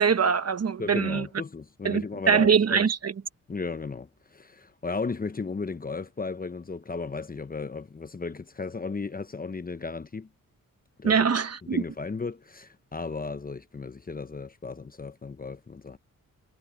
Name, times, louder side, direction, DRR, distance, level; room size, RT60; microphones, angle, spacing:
voice 1, 0.0-1.3 1.8-3.1 11.0-11.8, right 6 dB, 45° right, 1.3 m, -23 dB
voice 2, 0.8-2.9 3.5-10.3 11.0-11.2 11.7-16.0, left 4 dB, 25° left, 0.8 m, -35 dB
cardioid pair, 80°, 34 cm